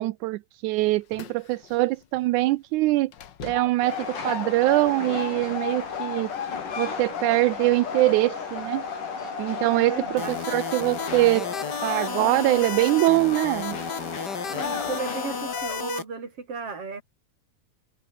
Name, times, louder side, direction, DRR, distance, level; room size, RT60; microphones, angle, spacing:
voice 1, 0.0-3.1 3.4-6.3 6.8-8.8 9.4-11.5 11.8-13.8, right 19 dB, 80° right, 2.0 m, -23 dB
sound 1, 0.8-1.8 2.0-2.2 3.1-13.6 14.0-14.1 14.5-15.1 15.4-15.8, left 9 dB, 60° left, 1.2 m, -37 dB
Train, 3.8-15.7, left 5 dB, 80° left, 6.7 m, -35 dB
voice 2, 9.7-10.4 14.5-17.0, right 4 dB, 45° right, 5.4 m, -35 dB
sound 2, 10.2-16.0, left 5 dB, 35° left, 2.7 m, -33 dB
omnidirectional pair, 3.7 m